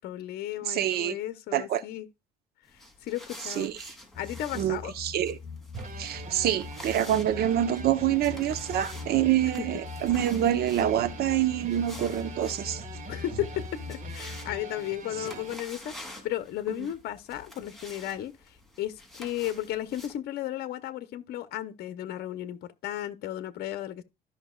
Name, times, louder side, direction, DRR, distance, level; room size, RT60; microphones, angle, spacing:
voice 1, 0.0-2.1 2.7-3.7 4.1-4.9 13.1-24.0, left 13 dB, 70° left, 0.9 m, -34 dB
voice 2, 0.7-1.2 1.5-1.8 3.6-3.9 4.5-5.4 6.0-12.8 15.2-15.3, right 11 dB, 70° right, 1.0 m, -26 dB
sound 1, 2.7-20.2, left 1 dB, ahead, 2.9 m, -49 dB
sound 2, 4.1-14.6, left 5 dB, 40° left, 5.1 m, -42 dB
sound 3, 5.7-15.6, right 5 dB, 45° right, 2.1 m, -44 dB
13.5 x 5.7 x 2.3 m
cardioid pair, 110°, 17 cm